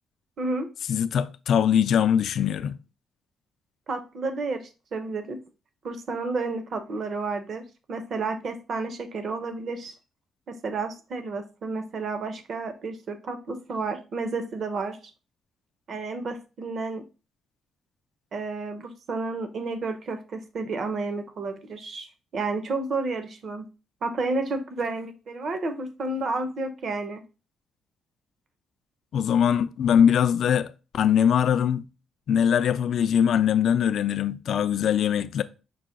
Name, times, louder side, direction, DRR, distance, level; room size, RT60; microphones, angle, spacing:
voice 1, 0.4-0.7 3.9-5.4 5.8-9.9 10.5-15.0 15.9-17.0 18.3-23.7 24.0-27.2, right 3 dB, 55° right, 0.7 m, -31 dB
voice 2, 0.9-2.8 29.1-31.8 32.3-35.4, left 8 dB, 65° left, 0.3 m, -22 dB
5.6 x 2.2 x 3.7 m
cardioid pair, 90°, 0 cm